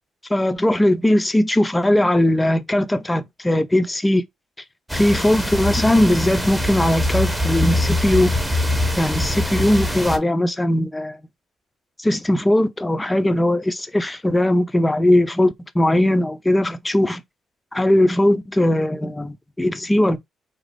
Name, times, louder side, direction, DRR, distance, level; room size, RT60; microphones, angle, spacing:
voice 1, 0.3-4.2 4.9-8.4 9.0-11.2 12.0-17.2 17.7-20.2, left 1 dB, 10° left, 0.6 m, -19 dB
sound 1, 4.9-10.2, left 1 dB, 5° right, 1.0 m, -23 dB
5.0 x 2.0 x 3.9 m
cardioid pair, 90°, 0 cm